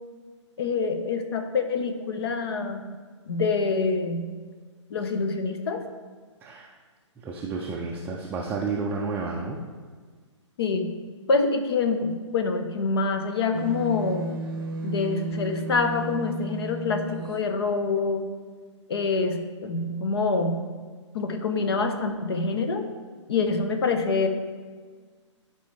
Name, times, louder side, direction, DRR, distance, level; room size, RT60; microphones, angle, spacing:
voice 1, 0.6-2.9 3.3-4.3 4.9-5.8 10.6-10.9 11.3-14.3 14.8-18.2 18.9-20.7 21.1-22.8 23.3-24.3, left 4 dB, 55° left, 6 dB, 0.9 m, -26 dB
voice 2, 6.4-6.7 7.2-9.6, right 4 dB, 10° right, -2 dB, 0.5 m, -31 dB
sound 1, 13.5-17.4, right 2 dB, 45° right, 0.7 m, -34 dB
11.5 x 4.7 x 3.2 m, 1.5 s
figure-of-eight pair, 130°, 16 cm